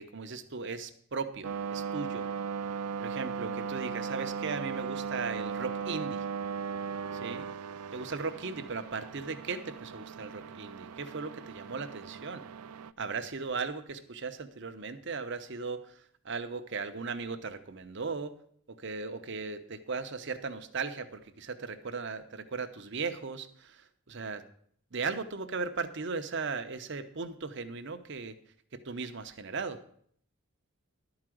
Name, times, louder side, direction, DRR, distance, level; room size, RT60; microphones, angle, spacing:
voice 1, 0.0-2.3 3.0-6.2 7.1-7.5 7.9-12.4 13.0-15.9 16.2-18.3 18.7-23.8 24.1-24.4 24.9-28.3 28.8-29.8, right 4 dB, 55° right, 9 dB, 0.8 m, -37 dB
sound 1, 1.4-12.9, right 6 dB, 90° right, 0.4 m, -37 dB
12.0 x 4.9 x 7.7 m, 0.63 s
head